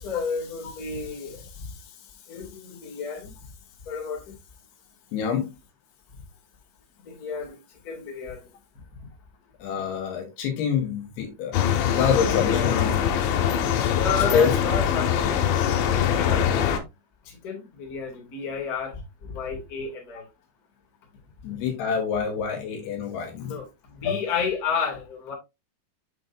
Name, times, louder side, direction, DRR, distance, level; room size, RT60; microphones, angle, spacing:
voice 1, 0.0-1.7 2.3-3.3 3.9-4.3 7.1-7.6 7.8-8.4 12.3-12.8 14.0-16.5 17.3-20.2 23.4-23.7 23.9-25.3, left 5 dB, 30° left, 1.9 m, -31 dB
voice 2, 5.1-5.5 9.6-11.6 11.9-13.0 14.3-14.5 21.4-23.6 24.0-24.2, left 7 dB, 70° left, 3.0 m, -26 dB
sound 1, 11.5-16.8, left 9 dB, 85° left, 3.4 m, -23 dB
7.9 x 6.2 x 2.6 m
omnidirectional pair, 5.2 m